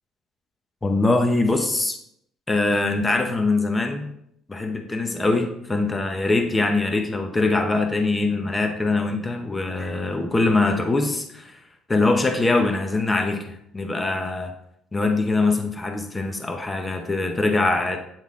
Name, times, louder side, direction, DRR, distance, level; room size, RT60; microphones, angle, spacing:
voice 1, 0.8-2.0 2.5-4.1 4.5-11.6 11.9-14.5 14.9-18.0, left 3 dB, 15° left, 5 dB, 0.8 m, -23 dB
9.0 x 3.9 x 3.7 m, 0.73 s
cardioid pair, 125°, 0 cm